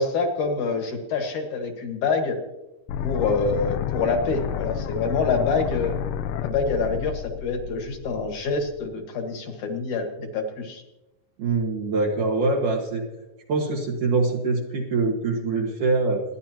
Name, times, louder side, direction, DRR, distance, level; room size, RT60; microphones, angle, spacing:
voice 1, 0.0-2.4 3.0-5.9 6.4-10.8, left 4 dB, 55° left, 4 dB, 2.7 m, -26 dB
sound 1, 2.9-8.9, left 9 dB, 80° left, 2.8 m, -31 dB
voice 2, 11.4-13.0 13.5-16.2, right 3 dB, 60° right, -4 dB, 2.9 m, -24 dB
28.5 x 11.0 x 3.0 m, 1.0 s
omnidirectional pair, 4.7 m